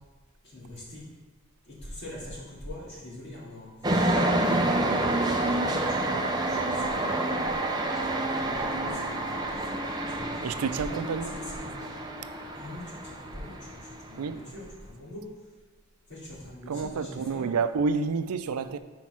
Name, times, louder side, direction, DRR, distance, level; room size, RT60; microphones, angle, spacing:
voice 1, 0.4-1.1 1.6-5.2 5.5-6.1 6.5-7.4 8.0-10.9 11.2-12.0 12.5-15.3 16.1-17.5, left 1 dB, 50° left, -6 dB, 2.3 m, -43 dB
sound 1, 3.8-14.2, right 1 dB, 20° right, 0.5 m, -28 dB
voice 2, 10.4-11.3 14.2-14.4 16.7-18.8, right 5 dB, 90° right, 12 dB, 0.4 m, -29 dB
6.3 x 4.6 x 5.9 m, 1.3 s
head